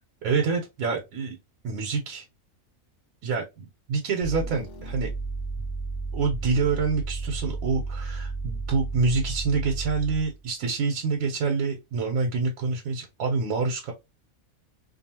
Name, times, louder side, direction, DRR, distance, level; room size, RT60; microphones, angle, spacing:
voice 1, 0.2-1.4 1.6-2.3 3.2-5.1 6.1-13.9, right 4 dB, 85° right, 1.1 m, -27 dB
sound 1, 4.2-10.4, right 3 dB, 65° left, 0.9 m, -33 dB
2.6 x 2.3 x 2.7 m
omnidirectional pair, 1.4 m